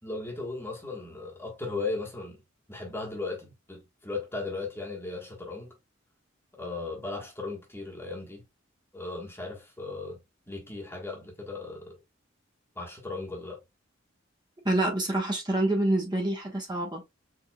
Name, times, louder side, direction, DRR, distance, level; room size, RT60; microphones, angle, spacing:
voice 1, 0.0-2.4 2.7-5.7 6.5-8.4 8.9-10.2 10.5-12.0 12.7-13.6, left 3 dB, 10° left, 1.4 m, -37 dB
voice 2, 14.6-17.0, right 1 dB, 20° right, 1.2 m, -27 dB
4.5 x 3.5 x 2.2 m
head